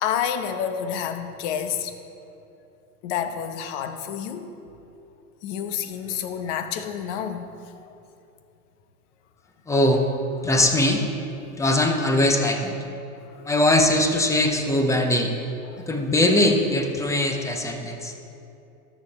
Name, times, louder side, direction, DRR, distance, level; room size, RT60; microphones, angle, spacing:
voice 1, 0.0-1.9 3.0-4.5 5.4-7.5 7.7-7.9 15.7-15.8, left 8 dB, 50° left, 8 dB, 1.0 m, -29 dB
voice 2, 9.7-10.0 10.4-11.0 11.6-12.7 13.5-15.3 15.9-18.1, left 1 dB, 5° left, 4 dB, 0.6 m, -21 dB
13.0 x 7.3 x 4.2 m, 2.8 s
hypercardioid pair, 125°, 47 cm